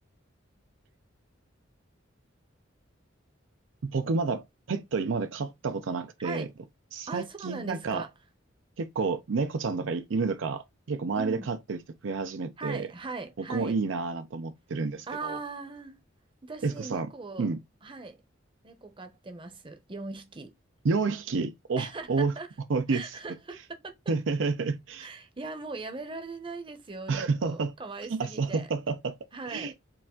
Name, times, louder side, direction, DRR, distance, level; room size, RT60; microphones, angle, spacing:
voice 1, 3.8-6.5 6.9-8.0 8.8-12.9 13.5-15.4 16.6-17.1 17.4-17.6 20.8-22.3 22.7-23.0 24.1-25.1 27.1-27.7 28.1-29.2 29.5-29.7, right 4 dB, 70° right, 0.5 m, -30 dB
voice 2, 7.1-8.1 11.1-11.5 12.6-13.7 15.1-16.0 16.4-17.5 17.8-18.2 18.6-20.5 21.8-22.5 22.9-23.9 25.0-28.7 29.3-29.7, right 3 dB, 25° right, 0.8 m, -39 dB
4.7 x 2.4 x 3.7 m
head